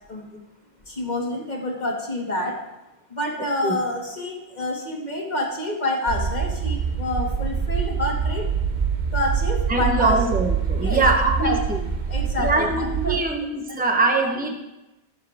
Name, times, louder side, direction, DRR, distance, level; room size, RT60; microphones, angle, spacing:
voice 1, 0.1-0.4 0.9-2.6 3.1-8.5 9.1-10.2 10.8-11.0 11.4-11.6 12.1-13.2, left 1 dB, 45° left, -1 dB, 2.2 m, -27 dB
sound 1, 6.1-13.2, right 6 dB, 50° right, 0.9 m, -25 dB
voice 2, 9.7-11.6 12.4-14.5, right 3 dB, 10° right, 3 dB, 1.0 m, -22 dB
18.0 x 7.4 x 3.6 m, 0.96 s
omnidirectional pair, 1.1 m